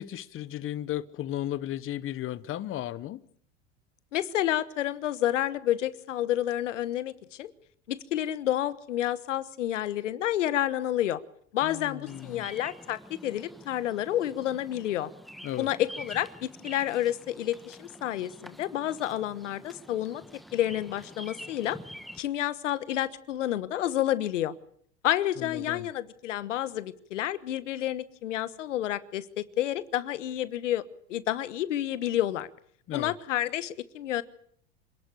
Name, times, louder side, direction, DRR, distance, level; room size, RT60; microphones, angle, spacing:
voice 1, 0.0-3.2 11.6-12.5 15.4-15.7 25.4-25.9 32.9-33.1, left 12 dB, 35° left, 1.0 m, -35 dB
voice 2, 4.1-7.5 7.9-11.2 11.5-15.1 15.6-20.2 20.5-21.8 22.2-24.5 25.0-30.8 31.1-32.5 32.9-34.2, left 12 dB, 85° left, 1.3 m, -29 dB
Bird vocalization bird call bird song, 12.1-22.2, equal, ahead, 1.2 m, -47 dB
26.5 x 11.5 x 9.9 m
hypercardioid pair, 105°, 36 cm